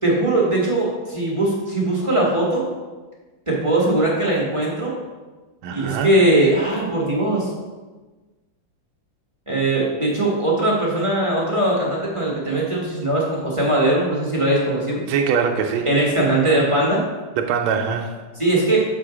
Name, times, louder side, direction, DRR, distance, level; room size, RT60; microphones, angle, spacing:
voice 1, 0.0-2.7 3.5-4.9 5.7-7.5 9.5-15.0 15.8-17.0 18.4-18.8, right 1 dB, 20° right, -5 dB, 1.1 m, -20 dB
voice 2, 5.6-6.1 15.1-15.9 17.4-18.3, right 6 dB, 85° right, 4 dB, 1.4 m, -23 dB
6.8 x 4.8 x 4.8 m, 1.3 s
omnidirectional pair, 2.2 m